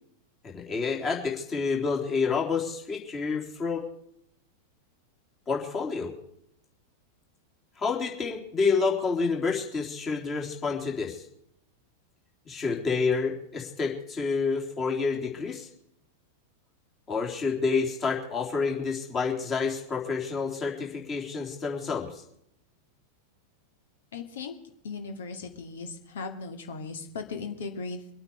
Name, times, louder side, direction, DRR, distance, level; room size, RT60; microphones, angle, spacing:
voice 1, 0.4-3.8 5.5-6.1 7.8-11.3 12.5-15.7 17.1-22.2, left 4 dB, 25° left, 0 dB, 3.7 m, -28 dB
voice 2, 24.1-24.5 24.8-28.0, left 4 dB, 60° left, 6 dB, 2.3 m, -37 dB
24.5 x 8.9 x 5.0 m, 0.73 s
figure-of-eight pair, 90°, 0 cm